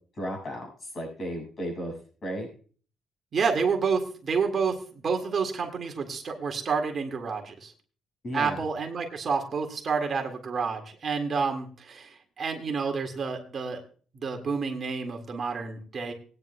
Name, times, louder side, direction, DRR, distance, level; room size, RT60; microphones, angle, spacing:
voice 1, 0.1-1.9 2.2-2.5 8.2-8.6, equal, 35° left, 2 dB, 6.1 m, -34 dB
voice 2, 3.3-7.7 8.3-13.8 14.1-16.1, right 5 dB, 40° right, 3 dB, 1.9 m, -29 dB
20.0 x 9.7 x 2.2 m, 0.40 s
cardioid pair, 140°, 0 cm